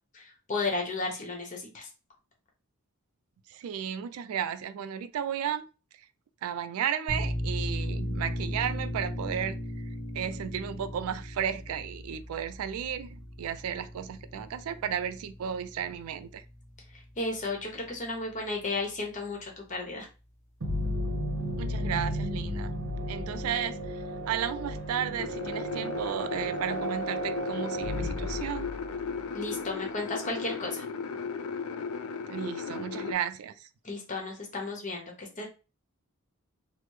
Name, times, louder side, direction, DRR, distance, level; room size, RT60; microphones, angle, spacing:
voice 1, 0.1-1.9 17.2-20.1 29.3-30.8 33.8-35.5, left 3 dB, 35° left, 0.9 m, -34 dB
voice 2, 3.5-5.7 6.4-9.6 10.1-16.4 21.6-22.7 23.1-24.0 24.3-28.7 32.3-33.7, right 9 dB, 80° right, 0.3 m, -34 dB
sound 1, 7.1-18.4, equal, 15° left, 1.1 m, -37 dB
sound 2, 20.6-29.2, equal, 65° right, 0.7 m, -34 dB
sound 3, 25.2-33.1, left 5 dB, 90° left, 0.4 m, -36 dB
3.3 x 2.0 x 3.1 m
head